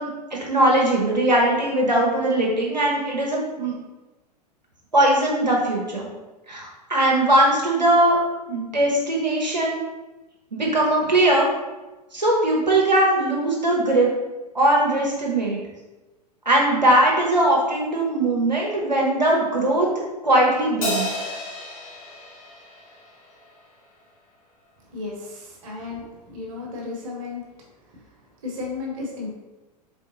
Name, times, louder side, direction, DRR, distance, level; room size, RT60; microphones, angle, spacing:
voice 1, 0.0-3.7 4.9-6.1 6.5-8.2 8.5-9.8 10.5-11.5 12.1-14.1 14.5-15.6 16.5-19.9 20.2-21.1, right 1 dB, 90° right, -3 dB, 0.9 m, -20 dB
Crash cymbal, 20.8-23.5, left 1 dB, 55° left, 1.1 m, -31 dB
voice 2, 24.8-29.3, left 3 dB, 55° right, -1 dB, 1.2 m, -35 dB
4.1 x 3.6 x 2.9 m, 1.1 s
figure-of-eight pair, 95°, 21 cm